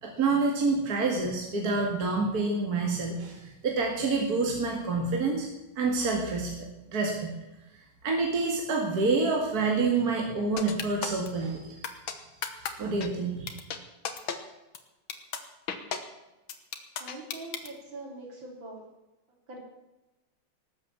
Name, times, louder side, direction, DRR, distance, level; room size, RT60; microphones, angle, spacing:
voice 1, 0.0-5.5 5.8-7.3 8.0-11.8 12.6-13.6, right 3 dB, 50° right, 0 dB, 2.5 m, -28 dB
sound 1, 10.6-11.3 11.8-12.1 12.4-12.7 13.0-13.1 13.5-13.8 14.0-14.4 14.7-14.8 15.1-15.4 15.7-16.0 16.5-17.7, left 7 dB, 85° left, 2.2 m, -33 dB
voice 2, 17.0-18.9 19.5-19.6, right 2 dB, 70° right, 0 dB, 4.5 m, -43 dB
18.5 x 8.6 x 7.5 m, 1.0 s
omnidirectional pair, 2.1 m